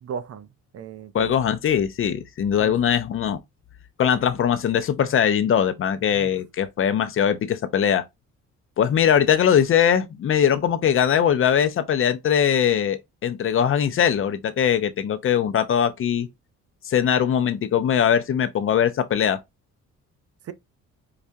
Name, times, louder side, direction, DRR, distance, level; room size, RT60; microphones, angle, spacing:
voice 1, 0.0-0.5 0.7-1.4 2.6-2.7 6.1-6.3 20.4-20.5, right 7 dB, 55° right, 0.5 m, -35 dB
voice 2, 1.1-3.4 4.0-8.0 8.8-16.3 16.9-19.4, left 8 dB, 45° left, 0.5 m, -21 dB
4.8 x 2.2 x 2.6 m
cardioid pair, 90°, 30 cm